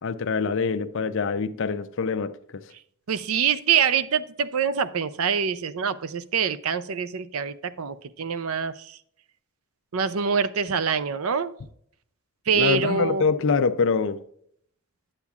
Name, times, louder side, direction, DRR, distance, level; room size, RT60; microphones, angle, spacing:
voice 1, 0.0-2.6 12.5-14.2, left 5 dB, 65° left, 0.5 m, -25 dB
voice 2, 3.1-9.0 9.9-11.5 12.5-13.2, right 6 dB, 85° right, 0.5 m, -25 dB
10.0 x 8.2 x 2.4 m
head